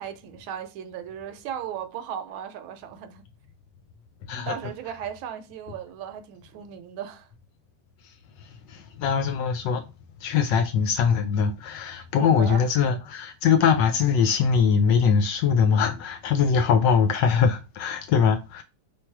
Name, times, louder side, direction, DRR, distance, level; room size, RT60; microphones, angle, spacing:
voice 1, 0.0-3.2 4.4-7.3 12.0-12.7, right 9 dB, 80° right, 1.4 m, -36 dB
voice 2, 4.2-4.5 8.7-9.8 10.2-18.6, left 6 dB, 70° left, 1.1 m, -22 dB
3.5 x 3.1 x 4.5 m
omnidirectional pair, 2.2 m